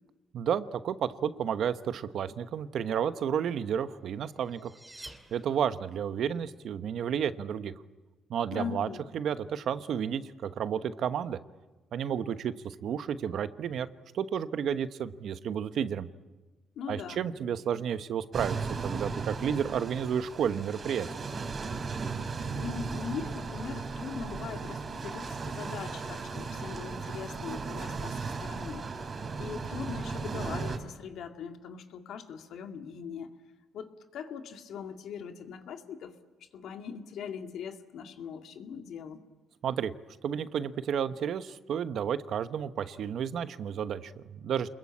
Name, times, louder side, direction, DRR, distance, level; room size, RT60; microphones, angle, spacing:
voice 1, 0.3-4.7 5.3-7.7 8.3-8.9 9.1-11.4 11.9-13.9 14.1-16.1 16.9-18.6 18.8-21.1 39.6-39.9 40.2-44.7, right 8 dB, 70° right, 11 dB, 1.1 m, -31 dB
sound 1, 4.2-6.0, right 1 dB, 10° right, 2.8 m, -50 dB
voice 2, 8.5-9.0 16.8-17.3 22.5-28.9 29.4-33.3 33.7-36.1 36.5-39.2, left 7 dB, 75° left, 5 dB, 2.2 m, -40 dB
sound 2, 18.3-30.8, right 4 dB, 40° right, 3.6 m, -36 dB
27.5 x 21.5 x 8.7 m, 1.2 s
cardioid pair, 90°, 0 cm